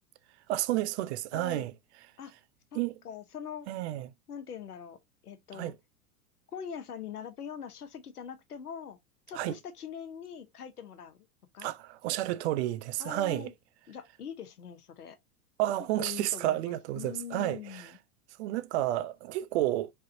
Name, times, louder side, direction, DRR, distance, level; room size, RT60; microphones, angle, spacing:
voice 1, 0.5-1.7 2.7-3.0 3.7-4.1 5.5-5.7 9.3-9.6 11.6-13.5 15.6-17.9 18.4-19.9, right 14 dB, 45° right, 0.6 m, -31 dB
voice 2, 1.3-1.7 2.2-2.3 2.7-3.7 4.3-5.7 6.5-9.0 9.3-11.3 11.5-11.7 13.0-13.5 13.9-15.2 16.0-18.0, left 8 dB, 80° left, 1.1 m, -43 dB
5.0 x 3.4 x 2.7 m
figure-of-eight pair, 95°, 46 cm